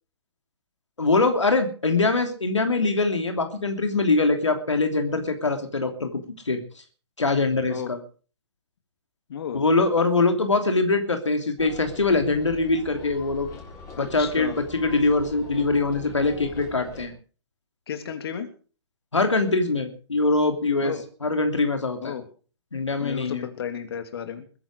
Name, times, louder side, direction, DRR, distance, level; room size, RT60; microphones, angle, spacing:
voice 1, 1.0-6.6 7.2-8.0 9.5-13.5 14.0-17.1 19.1-20.9 21.2-22.1 22.7-23.5, left 3 dB, 85° left, 6 dB, 2.9 m, -23 dB
voice 2, 9.3-9.6 14.0-14.6 17.9-18.5 20.8-21.0 22.0-22.2 23.0-24.4, left 7 dB, 55° left, 8 dB, 3.1 m, -33 dB
sound 1, 11.6-17.1, left 4 dB, 20° left, 7.1 m, -42 dB
22.0 x 11.0 x 4.8 m, 0.39 s
figure-of-eight pair, 125°, 15 cm